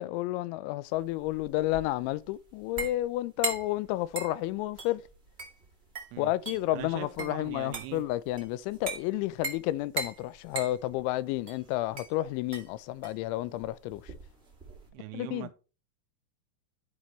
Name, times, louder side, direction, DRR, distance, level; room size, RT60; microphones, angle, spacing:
voice 1, 0.0-5.0 6.2-14.1 15.1-15.5, left 16 dB, 85° left, 3.0 m, -31 dB
sound 1, 0.9-14.9, right 3 dB, 60° right, 0.6 m, -40 dB
voice 2, 6.7-8.0 14.9-15.5, right 14 dB, 80° right, 2.4 m, -41 dB
14.0 x 5.3 x 3.1 m
omnidirectional pair, 5.3 m